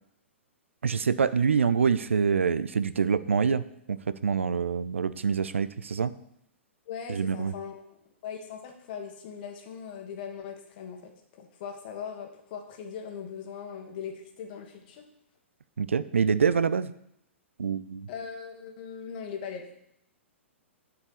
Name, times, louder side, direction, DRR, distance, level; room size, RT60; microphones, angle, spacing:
voice 1, 0.8-6.1 7.1-7.5 15.8-16.9 17.6-18.1, right 6 dB, 70° right, 15 dB, 0.4 m, -26 dB
voice 2, 6.9-7.9 8.2-15.0 18.1-19.6, left 7 dB, 45° left, 3 dB, 1.5 m, -40 dB
6.8 x 4.8 x 6.8 m, 0.77 s
figure-of-eight pair, 110°, 7 cm